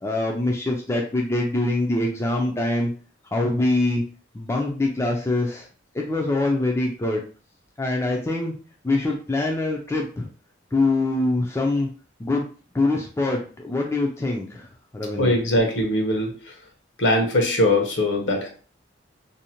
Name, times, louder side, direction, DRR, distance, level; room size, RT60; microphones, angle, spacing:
voice 1, 0.0-2.9 3.3-4.0 4.3-5.7 5.9-7.2 7.8-8.6 8.8-10.3 10.7-11.9 12.2-12.4 12.7-14.7 14.9-15.4, left 2 dB, 15° left, 0 dB, 0.3 m, -24 dB
voice 2, 15.2-16.5 17.0-18.5, left 1 dB, 75° left, 1 dB, 0.8 m, -21 dB
2.6 x 2.1 x 2.8 m, 0.39 s
head